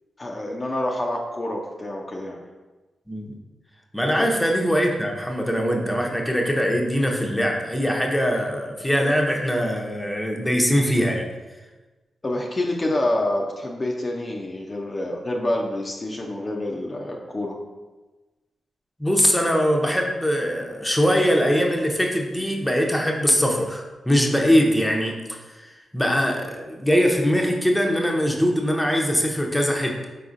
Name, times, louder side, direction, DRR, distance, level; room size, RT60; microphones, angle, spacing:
voice 1, 0.2-2.4 4.0-4.3 12.2-17.6, left 1 dB, 40° left, -1 dB, 0.5 m, -27 dB
voice 2, 3.9-11.3 19.0-30.1, equal, 10° left, 0 dB, 0.7 m, -22 dB
4.1 x 3.9 x 2.5 m, 1.2 s
supercardioid pair, 40°, 0 cm